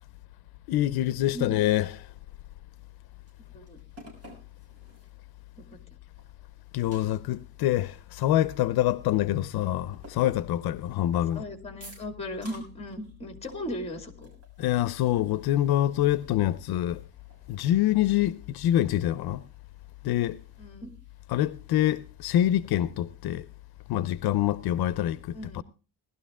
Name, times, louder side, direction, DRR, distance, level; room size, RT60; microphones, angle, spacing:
voice 1, 0.7-2.1 6.7-11.4 14.6-17.0 17.5-19.4 20.0-20.4 21.3-23.5 23.9-25.6, left 13 dB, 70° left, 0.6 m, -26 dB
sound 1, 2.8-5.2 5.7-5.8 6.2-9.2 9.6-11.3 11.8-13.2 13.4-13.6 13.9-22.5, right 1 dB, 40° right, 6.3 m, -56 dB
voice 2, 11.3-14.3 20.6-20.9 25.3-25.6, equal, 15° left, 2.3 m, -37 dB
18.5 x 12.0 x 3.6 m
cardioid pair, 170°, 38 cm